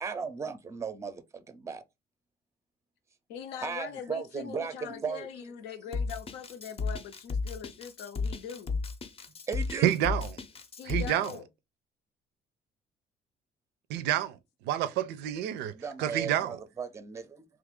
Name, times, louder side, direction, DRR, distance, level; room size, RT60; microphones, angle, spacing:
voice 1, 0.0-1.8 3.6-5.3 9.5-9.9 15.7-17.4, right 5 dB, 15° right, 0.5 m, -36 dB
voice 2, 3.3-8.8 10.8-11.5, left 7 dB, 85° left, 0.6 m, -42 dB
Drum kit, 5.9-11.3, left 4 dB, 35° left, 0.6 m, -34 dB
voice 3, 9.8-10.3 10.9-11.3 13.9-14.4 14.6-15.7 16.0-16.6, right 12 dB, 85° right, 0.5 m, -28 dB
2.9 x 2.4 x 3.5 m
cardioid pair, 110°, 17 cm